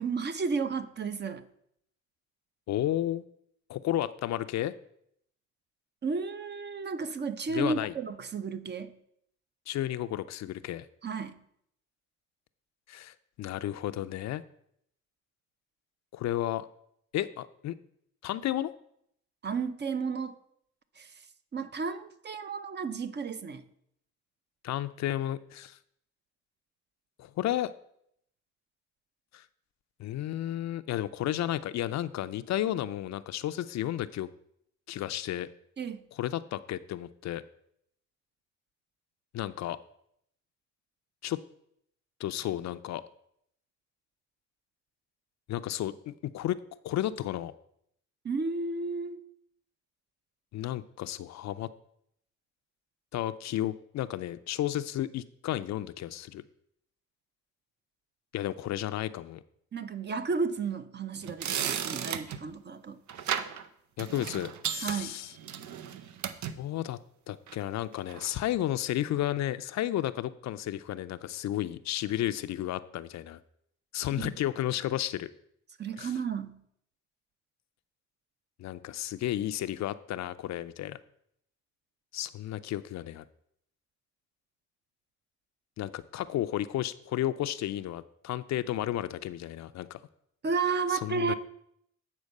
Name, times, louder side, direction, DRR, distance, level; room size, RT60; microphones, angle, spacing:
voice 1, 0.0-1.5 6.0-9.0 11.0-11.4 19.4-20.4 21.0-21.1 21.5-23.6 35.8-36.1 48.2-49.2 59.7-63.0 64.8-65.2 74.2-74.4 75.8-76.6 90.4-91.3, right 4 dB, 35° right, 0.6 m, -33 dB
voice 2, 2.7-3.2 3.7-4.7 7.5-7.9 9.7-10.9 12.9-14.4 16.1-16.7 17.1-17.7 18.2-18.7 24.6-25.8 27.2-27.7 29.3-29.4 30.0-34.3 34.9-35.5 36.1-37.4 39.3-39.8 41.2-41.4 42.2-43.0 45.5-46.6 46.8-47.5 50.5-51.7 53.1-56.4 58.3-59.4 64.0-65.3 66.6-67.0 67.3-73.4 73.9-75.3 76.0-76.1 78.6-81.0 82.1-83.2 85.8-90.0 90.9-91.3, left 13 dB, 65° left, 0.5 m, -32 dB
sound 1, 61.2-62.4 63.1-63.6 64.0-66.6 67.5-67.7 68.1-68.3, right 9 dB, 70° right, 0.7 m, -35 dB
8.4 x 4.4 x 6.5 m
cardioid pair, 90°, 30 cm